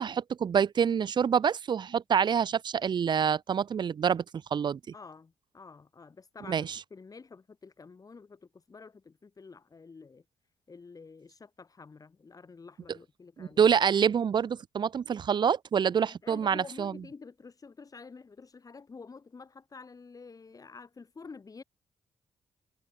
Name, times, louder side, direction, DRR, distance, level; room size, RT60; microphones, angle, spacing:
voice 1, 0.0-4.2 4.5-4.8 6.5-6.8 13.4-17.0, right 7 dB, 55° right, 0.8 m, -26 dB
voice 2, 4.9-10.2 10.7-13.6 15.9-21.6, left 4 dB, 40° left, 4.2 m, -49 dB
supercardioid pair, 55°, 9 cm